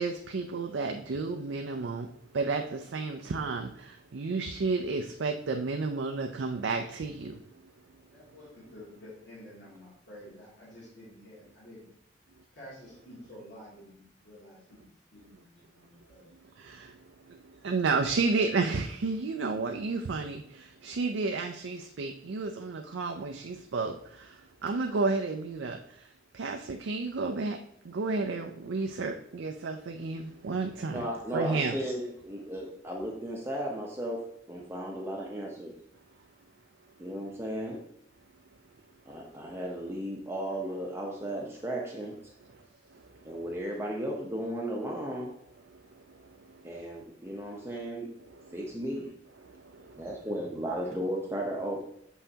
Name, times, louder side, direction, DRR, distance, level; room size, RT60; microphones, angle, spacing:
voice 1, 0.0-2.1 2.3-7.3 16.6-16.9 17.6-23.9 24.6-25.8 26.3-27.6 27.9-31.1 31.3-31.8, right 3 dB, 90° right, 4 dB, 0.5 m, -31 dB
voice 2, 8.1-11.9 12.5-15.4 15.7-16.3, left 1 dB, 70° left, -8 dB, 2.7 m, -50 dB
voice 3, 30.9-35.7 37.0-37.8 39.1-42.2 43.2-45.4 46.6-48.2 48.5-49.1 49.8-51.8, right 1 dB, 15° right, -1 dB, 0.8 m, -35 dB
7.1 x 5.5 x 2.8 m, 0.71 s
head